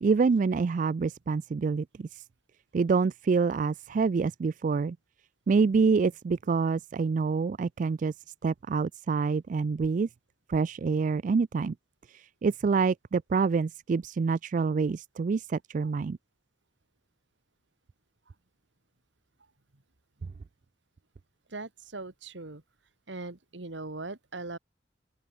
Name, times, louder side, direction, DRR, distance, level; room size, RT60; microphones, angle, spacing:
voice 1, 0.0-2.2 2.7-5.0 5.5-8.1 8.4-10.1 10.5-11.7 12.1-16.2, right 4 dB, 45° right, 0.3 m, -26 dB
voice 2, 21.5-22.6 23.1-24.6, right 3 dB, 75° right, 1.8 m, -40 dB
open air
head